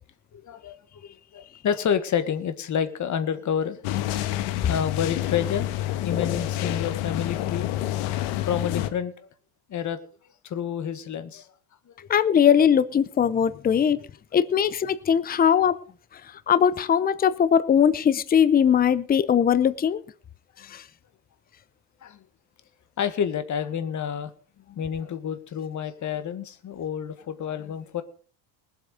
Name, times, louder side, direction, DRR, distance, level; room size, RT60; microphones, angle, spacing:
voice 1, 0.3-3.8 4.7-7.7 8.5-9.3 9.7-10.0 10.4-11.5 11.9-12.0 22.0-22.2 23.0-24.3 24.7-28.0, left 8 dB, 35° left, 1.6 m, -29 dB
sound 1, 3.8-8.9, left 14 dB, 85° left, 1.6 m, -28 dB
voice 2, 12.1-14.0 14.3-15.8 16.5-20.0 20.7-20.8, left 8 dB, 20° left, 0.6 m, -20 dB
20.0 x 8.1 x 5.1 m
cardioid pair, 130°, 48 cm